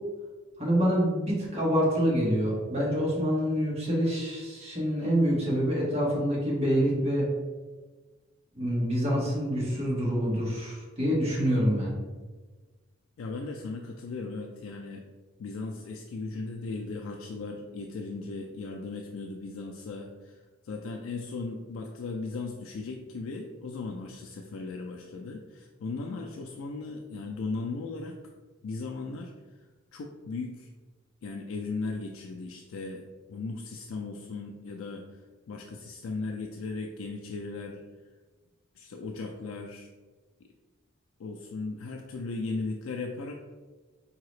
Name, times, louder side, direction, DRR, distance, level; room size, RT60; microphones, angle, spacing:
voice 1, 0.6-7.2 8.5-11.9, equal, 30° right, -5 dB, 1.3 m, -26 dB
voice 2, 13.2-15.1 15.4-28.2 28.6-29.3 29.9-30.7 31.2-33.0 33.3-35.2 35.5-37.8 38.8-39.9 41.2-43.3, left 3 dB, 75° left, 2 dB, 0.4 m, -37 dB
4.6 x 2.8 x 3.1 m, 1.3 s
head